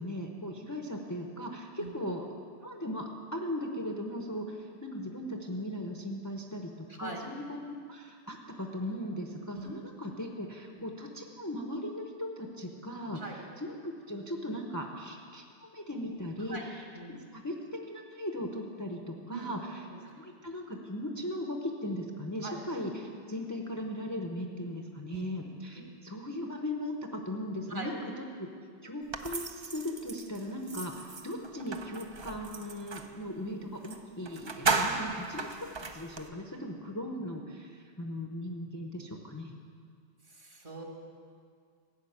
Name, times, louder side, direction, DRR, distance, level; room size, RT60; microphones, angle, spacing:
voice 1, 0.0-2.3 2.6-17.5 17.8-19.9 20.2-28.5 28.8-39.5, left 1 dB, 20° left, 2 dB, 0.7 m, -38 dB
voice 2, 6.9-7.2 9.5-9.7 10.8-10.9 13.2-13.4 16.5-16.7 16.9-17.2 19.3-19.5 19.9-20.0 22.4-22.6 25.1-25.2 25.8-26.0 27.7-27.9 40.3-40.8, right 3 dB, 50° right, 0 dB, 1.9 m, -42 dB
sound 1, 29.1-33.2 33.8-34.0 34.3-36.3, right 4 dB, 35° right, 0.5 m, -35 dB
13.5 x 6.2 x 8.7 m, 2.1 s
omnidirectional pair, 1.1 m